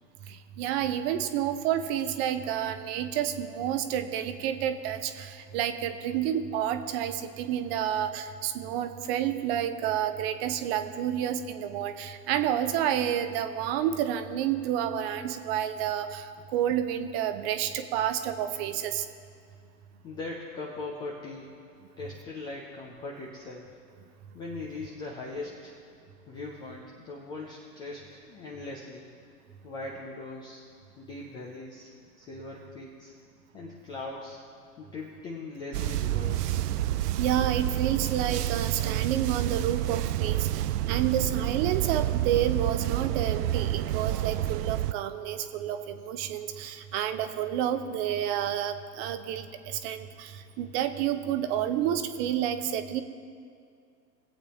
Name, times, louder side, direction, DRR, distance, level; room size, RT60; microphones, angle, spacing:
voice 1, 0.3-19.1 37.2-53.0, right 10 dB, 40° right, 9 dB, 0.8 m, -30 dB
voice 2, 20.0-21.5 22.0-23.8 24.3-25.7 26.3-29.1 29.6-30.6 31.0-31.9 32.2-33.1 33.5-34.4 34.8-36.6, left 3 dB, 10° left, -2 dB, 0.3 m, -40 dB
sound 1, 35.7-44.9, right 13 dB, 70° right, 0.5 m, -29 dB
21.0 x 8.2 x 2.9 m, 2.3 s
hypercardioid pair, 105°, 50 cm